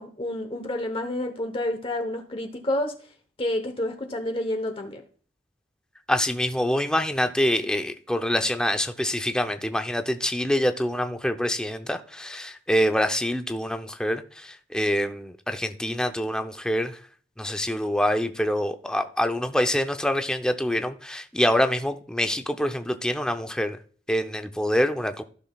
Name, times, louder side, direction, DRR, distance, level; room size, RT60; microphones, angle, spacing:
voice 1, 0.0-3.0 3.4-5.0, left 1 dB, 30° left, 1.0 m, -29 dB
voice 2, 6.1-17.0 17.4-23.8 24.1-25.2, equal, 5° left, 0.6 m, -25 dB
15.0 x 6.2 x 2.3 m
head